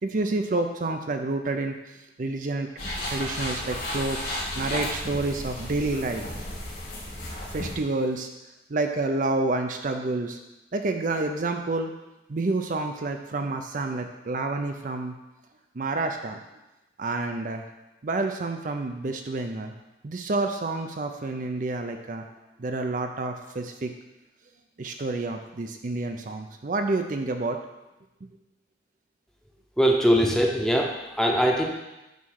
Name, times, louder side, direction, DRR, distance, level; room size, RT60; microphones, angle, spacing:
voice 1, 0.0-6.2 7.5-8.3 8.7-10.4 10.7-11.9 12.3-15.2 15.7-16.4 17.0-17.7 18.0-19.7 20.0-22.3 22.6-23.9 24.8-27.6, right 2 dB, 50° right, 5 dB, 0.5 m, -29 dB
sound 1, 2.8-7.7, left 1 dB, 60° left, 2.7 m, -33 dB
voice 2, 29.8-31.6, equal, 5° left, 0 dB, 0.8 m, -21 dB
9.3 x 3.2 x 6.3 m, 0.98 s
head